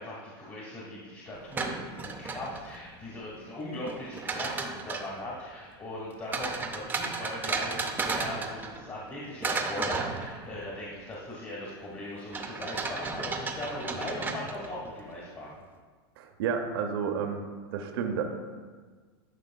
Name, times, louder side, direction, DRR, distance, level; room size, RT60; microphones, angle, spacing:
voice 1, 0.0-15.6, left 1 dB, 30° left, -5 dB, 1.5 m, -39 dB
sound 1, 1.3-2.9 3.9-5.2 6.3-9.1 9.4-10.8 12.3-14.9, right 4 dB, 15° right, 0.6 m, -34 dB
voice 2, 16.2-17.4 17.7-18.2, right 7 dB, 70° right, 5 dB, 0.8 m, -30 dB
11.5 x 5.0 x 2.3 m, 1.5 s
supercardioid pair, 125°, 13 cm